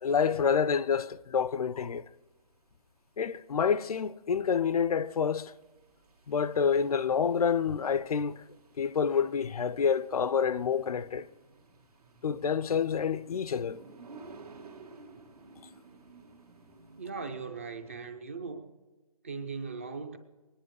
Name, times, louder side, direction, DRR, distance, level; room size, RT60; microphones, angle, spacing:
voice 1, 0.0-2.0 3.2-5.5 6.3-8.4 8.8-11.3 12.2-13.8, left 6 dB, 70° left, 0.5 m, -28 dB
sound 1, 2.2-18.0, right 3 dB, 75° right, 1.8 m, -55 dB
voice 2, 17.0-18.7 19.2-20.2, right 4 dB, 20° right, 0.5 m, -39 dB
21.0 x 10.0 x 4.7 m
hypercardioid pair, 170°, 20 cm